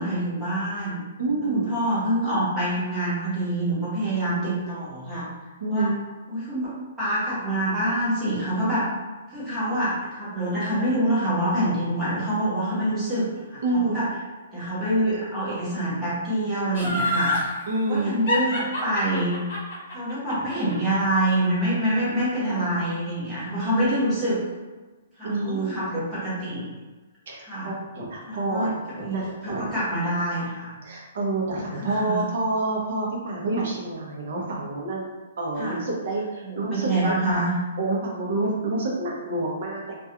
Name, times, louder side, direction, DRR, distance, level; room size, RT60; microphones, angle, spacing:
voice 1, 0.0-1.0 1.5-5.3 5.7-5.9 6.3-8.9 9.3-13.6 13.9-14.1 14.5-17.3 17.9-19.4 19.9-24.4 25.2-26.6 27.4-27.7 28.2-28.7 29.0-30.7 31.8-32.2 35.6-35.8 36.4-37.5, right 1 dB, 10° right, -11 dB, 0.9 m, -26 dB
voice 2, 1.2-1.6 5.6-6.0 13.6-14.0 17.7-18.2 25.2-25.8 27.3-29.7 30.8-35.1 35.4-37.3 37.8-40.0, right 2 dB, 55° right, -2 dB, 0.6 m, -28 dB
Laughter, 16.7-17.5 18.3-21.4 21.7-21.8, left 1 dB, 55° left, 0.9 m, -27 dB
2.3 x 2.2 x 2.8 m, 1.3 s
hypercardioid pair, 170°, 0 cm